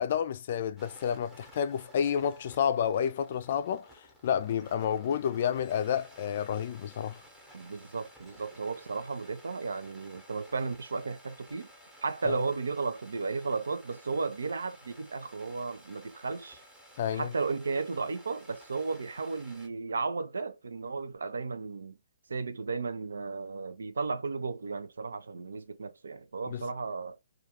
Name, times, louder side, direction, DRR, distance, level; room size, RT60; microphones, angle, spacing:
voice 1, 0.0-3.9 4.2-7.2 12.3-12.4 17.0-17.3 26.5-26.7, left 8 dB, 50° left, 0.3 m, -30 dB
sound 1, 0.8-19.7, equal, 10° right, 0.8 m, -55 dB
voice 2, 7.5-11.7 12.0-16.6 17.1-22.0 22.3-27.2, right 4 dB, 80° right, 0.4 m, -34 dB
2.3 x 2.3 x 2.9 m
hypercardioid pair, 140°, 0 cm